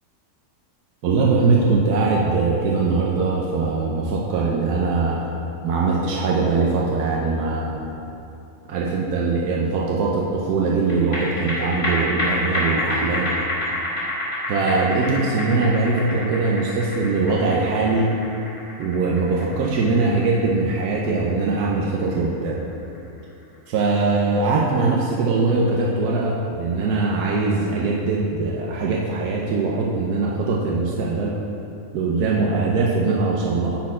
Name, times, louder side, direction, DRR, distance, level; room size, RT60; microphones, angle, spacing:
voice 1, 1.0-5.2 5.6-7.8 8.7-13.3 14.5-18.1 18.8-22.6 23.7-31.3 31.9-33.8, right 3 dB, 90° right, -3 dB, 1.2 m, -21 dB
sound 1, 10.9-23.6 23.9-24.0, left 1 dB, 55° left, 1.8 m, -29 dB
10.0 x 4.2 x 4.2 m, 2.8 s
omnidirectional pair, 1.6 m